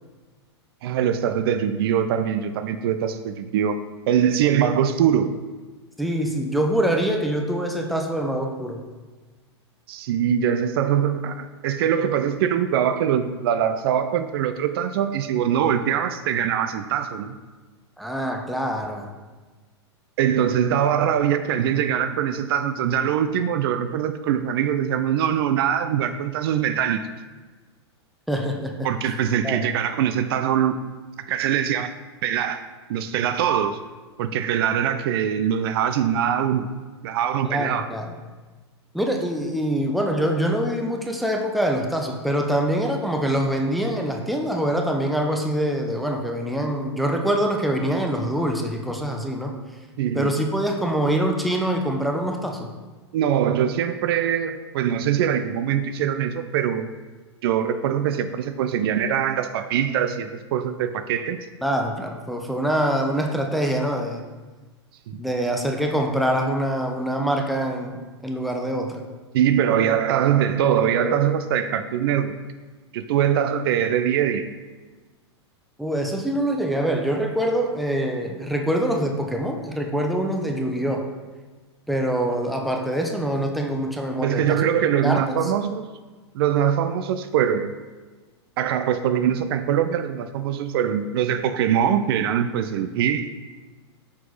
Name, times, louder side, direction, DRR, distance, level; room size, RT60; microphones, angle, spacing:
voice 1, 0.8-3.8 4.1-5.3 9.9-17.3 20.2-27.1 28.8-30.8 31.3-31.9 32.2-32.6 32.9-33.8 34.2-36.7 37.0-37.9 50.0-50.4 53.1-56.9 57.4-61.4 65.1-65.2 69.3-72.4 72.9-74.5 84.2-85.8 86.3-87.7 88.6-93.3, right 9 dB, 55° right, 10 dB, 0.4 m, -22 dB
voice 2, 6.0-8.8 18.0-19.1 28.3-28.7 29.4-29.6 37.4-38.1 38.9-49.5 50.1-52.7 61.6-64.2 65.2-69.0 75.8-81.1 81.9-84.6 85.0-85.5, right 1 dB, ahead, 2 dB, 0.7 m, -24 dB
6.0 x 4.6 x 4.0 m, 1.3 s
hypercardioid pair, 100°, 15 cm